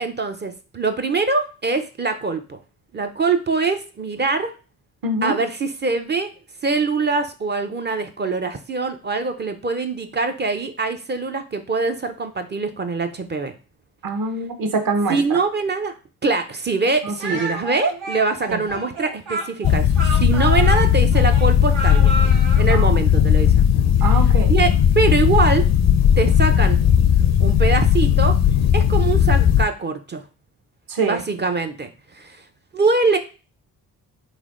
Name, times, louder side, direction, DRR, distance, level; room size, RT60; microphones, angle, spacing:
voice 1, 0.0-2.6 2.9-4.5 5.2-6.3 6.6-13.5 15.1-15.9 16.2-22.1 22.6-23.7 24.5-25.6 26.2-26.8 27.4-28.4 28.7-30.2 31.1-31.9 32.1-32.4 32.7-33.2, right 4 dB, 25° right, 7 dB, 0.4 m, -23 dB
voice 2, 5.0-5.4 14.0-15.4 17.0-17.4 18.5-18.6 22.7-22.9 23.1-23.3 24.0-24.5 30.9-31.2, right 3 dB, 50° right, 6 dB, 0.9 m, -25 dB
Speech, 17.2-22.7, right 2 dB, 75° right, 1.0 m, -30 dB
sound 1, 19.6-29.6, left 9 dB, 40° left, 0.4 m, -16 dB
3.5 x 3.2 x 2.5 m, 0.34 s
hypercardioid pair, 40°, 45 cm